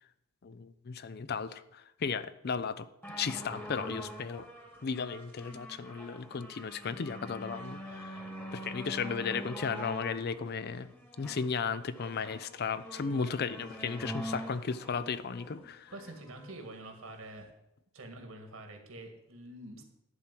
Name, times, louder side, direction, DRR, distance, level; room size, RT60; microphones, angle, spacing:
voice 1, 0.4-2.9 3.2-4.5 4.8-8.2 8.5-10.9 11.2-15.9, left 5 dB, 50° left, 15 dB, 0.5 m, -35 dB
sound 1, 3.0-16.6 17.4-17.5, equal, 10° left, 1.5 m, -44 dB
voice 2, 15.9-17.5 17.9-19.8, right 2 dB, 75° right, 4 dB, 1.9 m, -46 dB
11.0 x 4.4 x 7.6 m, 0.89 s
head